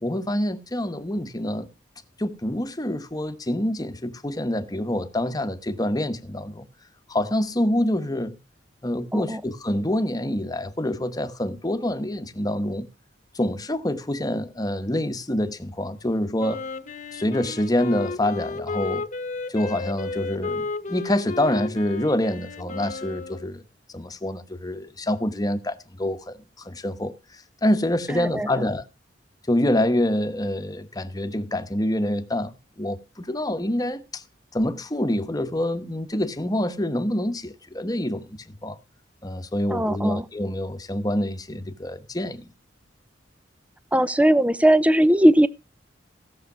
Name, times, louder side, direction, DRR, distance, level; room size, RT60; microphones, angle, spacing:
voice 1, 0.0-1.7 2.2-6.6 7.1-8.4 8.8-12.9 13.3-16.7 17.1-19.0 19.5-23.6 23.9-27.1 27.6-28.8 29.5-34.2 34.5-38.8 39.2-42.5, left 1 dB, 20° left, 1.1 m, -26 dB
Wind instrument woodwind instrument, 16.4-23.5, left 3 dB, 40° left, 1.2 m, -33 dB
voice 2, 28.1-28.7 39.7-40.2 43.9-45.5, right 1 dB, 5° right, 0.6 m, -19 dB
16.5 x 6.6 x 6.1 m
head